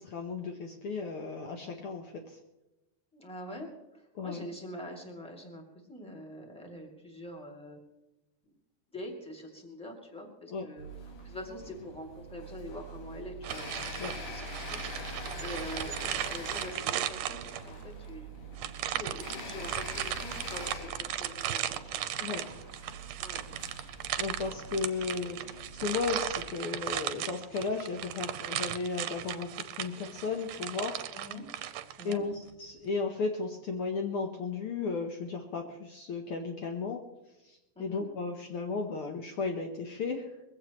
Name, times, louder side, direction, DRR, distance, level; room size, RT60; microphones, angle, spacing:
voice 1, 0.0-2.4 4.1-4.5 10.5-10.7 14.0-14.2 22.2-22.5 24.2-31.0 32.0-37.0 37.4-40.3, left 4 dB, 85° left, 3 dB, 1.2 m, -35 dB
voice 2, 3.1-7.8 8.4-8.5 8.9-10.9 11.2-15.0 15.4-18.3 18.9-22.0 23.2-23.4 31.1-31.4 32.0-32.2 37.7-38.0, left 1 dB, ahead, 1 dB, 1.7 m, -44 dB
sound 1, 10.8-26.5, equal, 65° left, 3.8 m, -44 dB
sound 2, 13.4-17.8 18.6-32.2, right 12 dB, 80° right, 2.1 m, -36 dB
22.0 x 16.0 x 3.0 m, 0.97 s
omnidirectional pair, 4.0 m